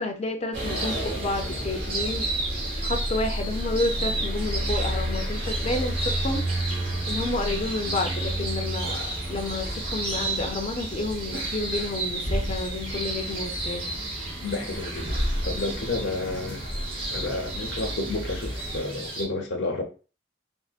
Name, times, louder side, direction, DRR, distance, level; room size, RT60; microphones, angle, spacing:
voice 1, 0.0-2.3 2.8-6.4 7.1-13.9, left 2 dB, 35° left, 0.5 m, -30 dB
sound 1, 0.5-19.3, right 2 dB, 30° right, 0.8 m, -34 dB
sound 2, 0.5-18.8, equal, 70° right, 0.9 m, -32 dB
voice 2, 14.4-16.6 17.1-19.8, left 2 dB, 70° left, 0.7 m, -31 dB
3.5 x 2.1 x 2.3 m
head